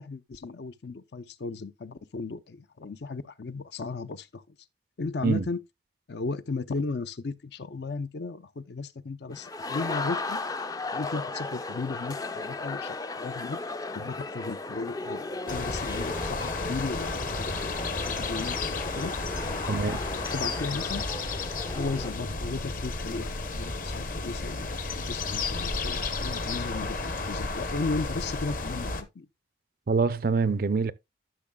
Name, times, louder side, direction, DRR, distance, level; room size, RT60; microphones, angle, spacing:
voice 1, 0.0-4.4 5.0-5.6 6.1-10.4 10.9-13.6 13.9-19.1 19.5-19.8 20.1-21.0 21.7-29.3, left 3 dB, 65° left, 0.6 m, -35 dB
Crowd laugh for Long time, 9.3-22.1, left 3 dB, 20° left, 0.4 m, -36 dB
Wind in the larch tree, 15.5-29.0, left 3 dB, 45° left, 0.9 m, -32 dB
voice 2, 19.7-20.0 29.9-30.9, right 4 dB, 50° right, 0.4 m, -25 dB
12.5 x 6.2 x 2.2 m
head